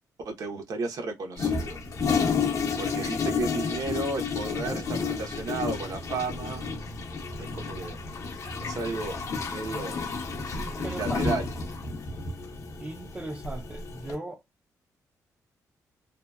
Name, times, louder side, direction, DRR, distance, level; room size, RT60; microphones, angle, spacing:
voice 1, 0.2-1.8 2.8-6.7 7.4-8.0 8.6-9.2 9.5-10.0 10.8-11.5, right 3 dB, 65° right, 0.8 m, -33 dB
Toilet flush, 1.4-14.1, left 5 dB, 55° left, 0.7 m, -31 dB
voice 2, 4.6-4.9 9.9-10.1 10.6-11.3 12.8-14.4, right 1 dB, 20° right, 0.4 m, -38 dB
2.7 x 2.1 x 2.2 m
cardioid pair, 90°, 7 cm